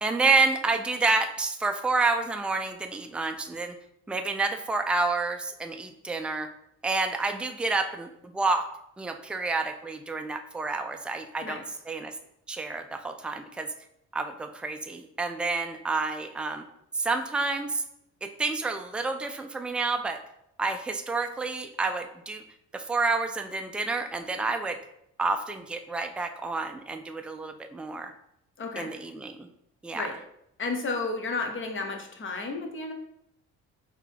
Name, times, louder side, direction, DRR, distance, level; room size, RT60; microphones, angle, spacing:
voice 1, 0.0-3.8 4.1-6.5 6.8-8.6 9.0-11.6 11.9-12.1 12.5-13.7 14.1-16.6 16.9-17.8 18.2-20.2 20.6-22.4 22.7-24.8 25.2-28.1 28.8-29.5 29.8-30.1, right 3 dB, 5° right, 5 dB, 0.4 m, -29 dB
voice 2, 28.6-28.9 29.9-30.1 30.6-32.9, left 3 dB, 40° left, 4 dB, 0.9 m, -32 dB
3.9 x 2.9 x 4.6 m, 0.77 s
cardioid pair, 90°, 30 cm